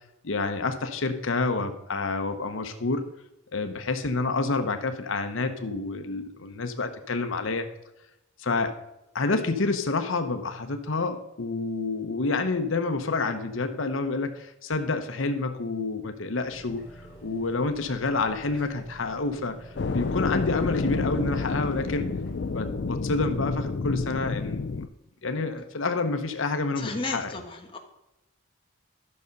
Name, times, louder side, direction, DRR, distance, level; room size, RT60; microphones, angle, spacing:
voice 1, 0.2-3.0 3.5-7.7 8.4-8.7 9.1-16.8 17.2-22.1 22.5-24.8 25.2-27.4, left 3 dB, 80° left, 7 dB, 0.9 m, -28 dB
sound 1, 16.5-22.6, right 2 dB, 5° right, 4.2 m, -49 dB
sound 2, 19.8-24.9, left 4 dB, 55° left, 0.5 m, -29 dB
voice 2, 26.8-27.8, left 3 dB, 25° left, 2 dB, 1.3 m, -33 dB
12.0 x 6.6 x 5.2 m, 0.90 s
head